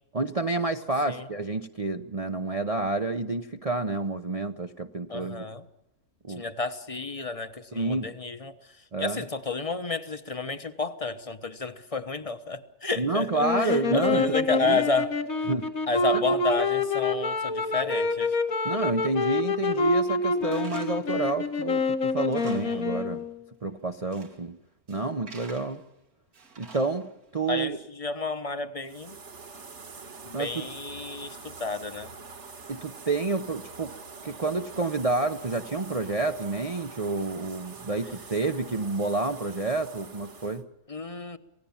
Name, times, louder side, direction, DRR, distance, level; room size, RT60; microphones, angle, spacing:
voice 1, 0.1-5.5 6.2-6.4 7.7-8.1 8.9-9.2 13.0-14.8 15.5-15.7 16.1-16.2 18.6-23.2 23.6-24.6 24.9-25.8 26.6-27.8 30.3-30.6 32.7-33.9 34.2-40.6, right 3 dB, 30° right, 6 dB, 0.7 m, -29 dB
voice 2, 5.1-5.7 6.4-8.5 9.0-15.1 15.9-18.4 22.5-22.8 27.5-29.2 30.2-32.1 40.9-41.4, left 4 dB, 25° left, 10 dB, 1.1 m, -31 dB
sound 1, 13.3-23.3, left 3 dB, 70° left, 2.2 m, -27 dB
Tools, 20.5-21.1 21.5-21.6 22.1-22.9 23.2-23.3 23.9-24.4 24.9-25.9 26.3-27.2, right 4 dB, 90° right, 2.8 m, -48 dB
sound 2, 28.8-40.6, right 4 dB, 55° right, 1.8 m, -45 dB
27.5 x 17.5 x 7.2 m, 0.90 s
omnidirectional pair, 1.5 m